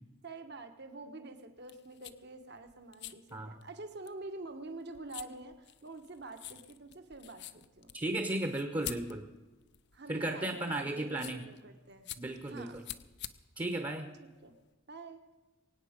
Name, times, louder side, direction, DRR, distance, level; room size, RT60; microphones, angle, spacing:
voice 1, 0.2-8.0 9.9-12.1 12.4-12.8 14.2-14.5 14.9-15.2, right 3 dB, 50° right, 7 dB, 1.3 m, -47 dB
sound 1, 1.6-14.7, left 12 dB, 50° left, 0.6 m, -49 dB
voice 2, 7.9-9.2 10.1-11.4 12.2-12.9 13.6-14.1, right 1 dB, 20° right, 6 dB, 1.0 m, -35 dB
23.5 x 9.3 x 5.2 m, 1.2 s
head